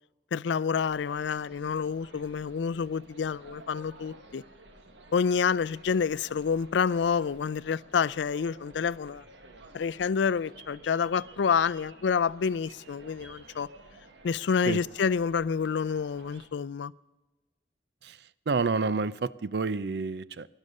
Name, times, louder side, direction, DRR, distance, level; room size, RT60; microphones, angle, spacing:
voice 1, 0.3-4.4 5.1-9.2 9.7-13.7 14.2-16.9, left 6 dB, 85° left, 0.4 m, -28 dB
sound 1, 0.8-16.5, right 2 dB, 90° right, 1.5 m, -52 dB
voice 2, 18.5-20.5, right 4 dB, 65° right, 0.5 m, -29 dB
18.0 x 11.0 x 6.6 m
head